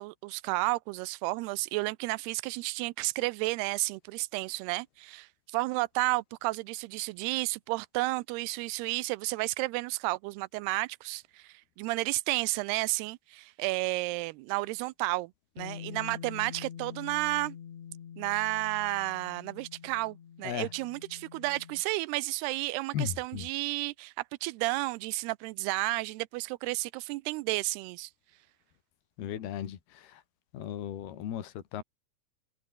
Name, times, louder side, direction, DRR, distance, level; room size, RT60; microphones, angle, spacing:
voice 1, 0.0-17.6 18.2-28.1, right 22 dB, 85° right, 2.7 m, -32 dB
Bass guitar, 15.6-21.8, left 8 dB, 50° left, 3.0 m, -45 dB
voice 2, 22.9-23.5 29.2-30.2 30.5-31.8, left 10 dB, 75° left, 4.3 m, -36 dB
omnidirectional pair, 4.6 m